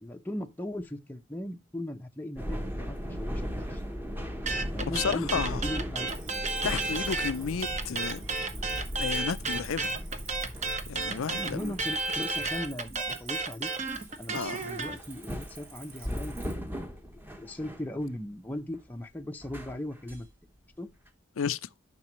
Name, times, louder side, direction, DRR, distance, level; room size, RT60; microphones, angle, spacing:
voice 1, 0.0-3.9 4.7-6.1 11.1-13.7 14.2-20.3 20.8-20.9, left 1 dB, 10° left, 0.6 m, -38 dB
sound 1, 2.4-18.0 18.5-18.8 19.4-20.2 21.1-21.2, equal, 10° right, 1.0 m, -38 dB
sound 2, 4.5-7.3 7.6-15.0, right 3 dB, 35° right, 1.0 m, -32 dB
voice 2, 4.8-5.6 6.6-8.2 8.9-10.0 10.9-11.7 14.3-14.7 21.4-21.7, left 6 dB, 80° left, 0.5 m, -32 dB
Cricket, 6.1-16.5, right 5 dB, 80° right, 3.1 m, -50 dB
11.0 x 6.0 x 3.0 m
head